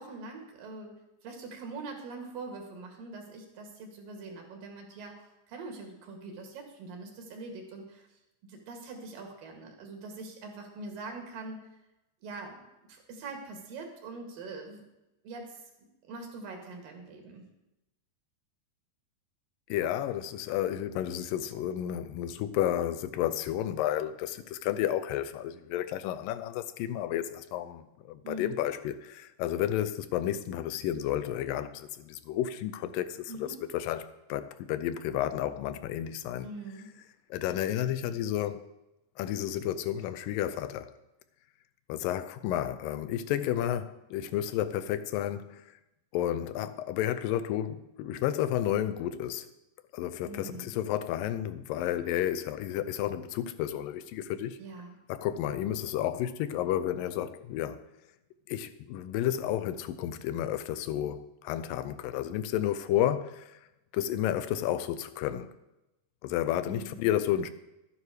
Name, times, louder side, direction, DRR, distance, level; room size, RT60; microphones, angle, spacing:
voice 1, 0.0-8.1 8.5-11.6 12.2-12.6 12.9-14.8 15.2-17.4 28.2-28.6 33.3-33.6 36.4-36.9 50.3-50.7 54.6-55.0 66.7-67.0, right 3 dB, 90° right, 3.7 m, -43 dB
voice 2, 19.7-36.5 37.3-38.7 39.2-41.0 41.9-45.6 46.1-49.5 49.9-54.6 55.1-57.8 58.5-63.6 63.9-65.5 66.2-67.5, left 11 dB, 90° left, 2.4 m, -31 dB
12.5 x 9.6 x 4.9 m
omnidirectional pair, 3.9 m